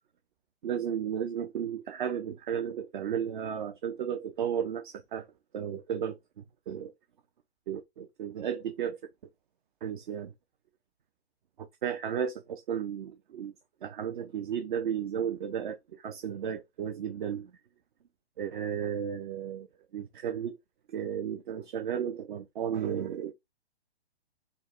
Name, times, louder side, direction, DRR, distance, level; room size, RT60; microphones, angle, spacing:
voice 1, 0.6-5.3 5.5-6.2 6.7-6.9 7.7-9.0 9.8-10.3 11.6-13.5 13.8-17.5 18.4-19.7 19.9-20.6 20.9-23.3, right 8 dB, 50° right, 0.5 m, -34 dB
4.6 x 2.1 x 3.7 m
figure-of-eight pair, 130°, 32 cm